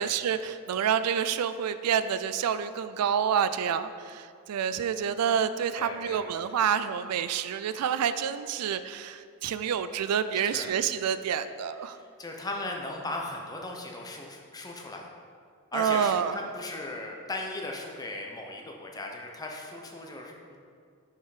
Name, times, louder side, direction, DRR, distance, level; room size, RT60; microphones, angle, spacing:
voice 1, 0.0-12.0 15.7-16.4, right 8 dB, 90° right, 12 dB, 0.3 m, -28 dB
voice 2, 5.8-6.2 10.5-10.7 11.9-15.1 15.7-20.6, left 2 dB, 15° left, 0 dB, 0.6 m, -37 dB
5.7 x 4.6 x 4.8 m, 2.2 s
head